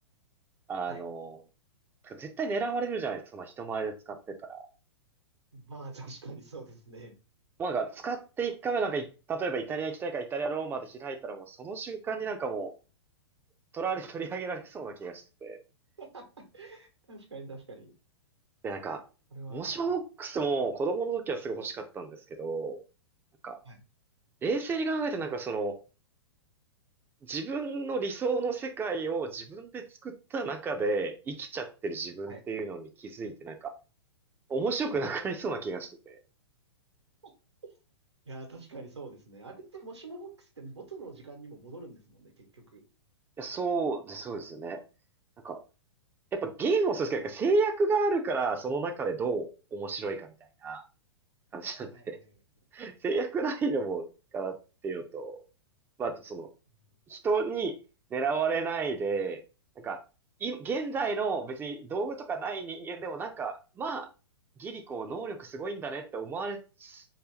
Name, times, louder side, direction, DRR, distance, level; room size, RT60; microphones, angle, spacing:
voice 1, 0.7-1.4 2.0-4.7 7.6-12.7 13.7-15.6 18.6-19.0 19.5-22.8 23.4-23.6 24.4-25.8 27.3-33.7 34.5-36.2 43.4-44.8 45.4-45.6 46.3-50.3 50.6-50.8 51.5-52.2 52.7-54.1 54.3-54.6 54.8-55.4 56.0-56.5 57.1-57.8 58.1-59.4 59.8-60.0 60.4-64.1 64.6-67.0, right 4 dB, 15° right, 0.4 m, -32 dB
voice 2, 5.5-7.2 16.0-16.2 16.5-17.9 19.3-19.7 23.6-23.8 32.3-32.4 37.2-37.3 37.6-37.7 38.2-42.8 51.9-52.3, right 3 dB, 80° right, 1.2 m, -45 dB
3.2 x 2.8 x 2.9 m
figure-of-eight pair, 105°, 14 cm